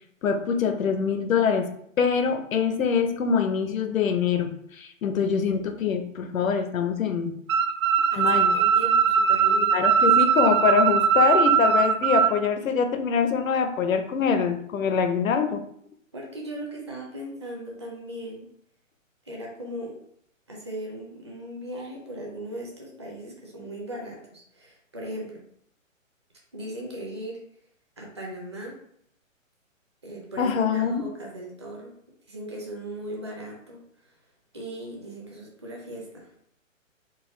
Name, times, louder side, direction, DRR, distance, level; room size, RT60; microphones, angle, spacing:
voice 1, 0.2-1.7 2.0-7.4 8.2-8.5 9.7-15.6 30.4-31.1, left 6 dB, 80° left, 7 dB, 0.7 m, -24 dB
sound 1, 7.5-12.3, right 7 dB, 85° right, 0.6 m, -20 dB
voice 2, 8.1-9.7 16.1-18.4 19.3-19.9 20.5-25.4 26.5-27.4 28.0-28.7 30.0-31.9 32.3-33.8 34.5-36.3, right 1 dB, 20° right, -2 dB, 0.6 m, -38 dB
4.0 x 2.3 x 3.7 m, 0.67 s
hypercardioid pair, 165°, 40 cm